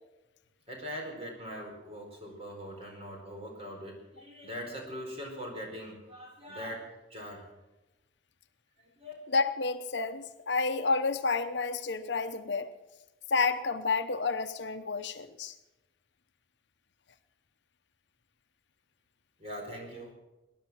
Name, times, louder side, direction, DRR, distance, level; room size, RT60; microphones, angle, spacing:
voice 1, 0.7-7.5 8.8-9.1 19.4-20.1, equal, 30° right, 1 dB, 4.5 m, -42 dB
voice 2, 9.3-12.7 13.3-15.5, left 4 dB, 60° left, 10 dB, 0.9 m, -30 dB
19.5 x 11.0 x 6.3 m, 1.0 s
head